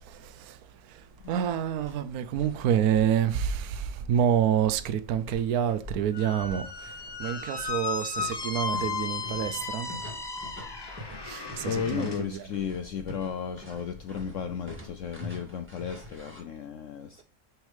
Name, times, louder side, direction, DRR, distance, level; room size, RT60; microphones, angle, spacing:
sound 1, 1.0-16.4, left 2 dB, 5° right, 1.9 m, -46 dB
voice 1, 1.3-6.7 7.2-9.9 11.3-12.5, right 9 dB, 70° right, 1.1 m, -27 dB
Squeak, 6.1-12.2, left 4 dB, 35° left, 0.4 m, -35 dB
voice 2, 11.6-17.2, left 7 dB, 65° left, 0.8 m, -34 dB
6.2 x 3.7 x 5.0 m
omnidirectional pair, 1.7 m